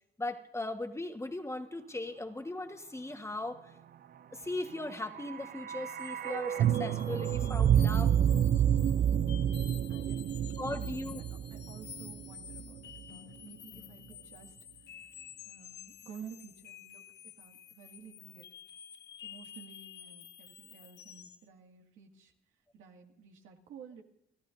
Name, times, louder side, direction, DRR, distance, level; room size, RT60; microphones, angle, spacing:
voice 1, 0.2-3.7 4.3-8.1 10.6-11.2, left 2 dB, 15° left, 6 dB, 1.3 m, -38 dB
sound 1, 4.9-13.0 13.3-13.4, right 9 dB, 50° right, 0.5 m, -29 dB
sound 2, 6.0-21.5, left 9 dB, 60° left, 0.8 m, -51 dB
voice 2, 9.6-11.1 11.5-15.1 15.5-18.5 19.2-24.0, right 6 dB, 85° right, 2 dB, 2.1 m, -53 dB
29.0 x 14.0 x 2.6 m, 0.80 s
cardioid pair, 90°, 20 cm